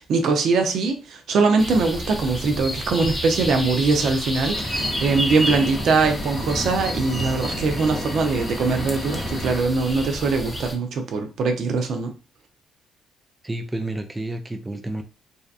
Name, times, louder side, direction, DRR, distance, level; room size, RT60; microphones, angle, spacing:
voice 1, 0.0-12.1, right 4 dB, 70° right, 0.5 m, -22 dB
sound 1, 1.6-10.8, equal, 10° left, 0.7 m, -30 dB
Engine, 4.5-9.6, left 1 dB, 45° left, 1.0 m, -33 dB
voice 2, 13.4-15.0, right 1 dB, 15° right, 0.3 m, -30 dB
2.7 x 2.2 x 2.4 m
cardioid pair, 90°, 0 cm